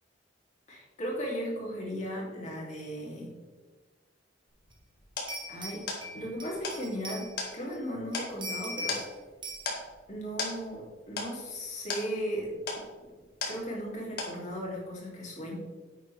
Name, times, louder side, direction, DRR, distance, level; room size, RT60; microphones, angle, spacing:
voice 1, 0.7-3.4 5.5-9.0 10.1-12.8 13.5-15.6, equal, 40° left, -3 dB, 3.1 m, -36 dB
sound 1, 4.5-13.9 14.2-14.8, left 3 dB, 55° left, 2.2 m, -38 dB
sound 2, 4.7-4.8 5.3-7.8 8.1-9.1 9.4-9.7, equal, 25° right, 1.3 m, -40 dB
9.9 x 8.1 x 3.5 m, 1.3 s
head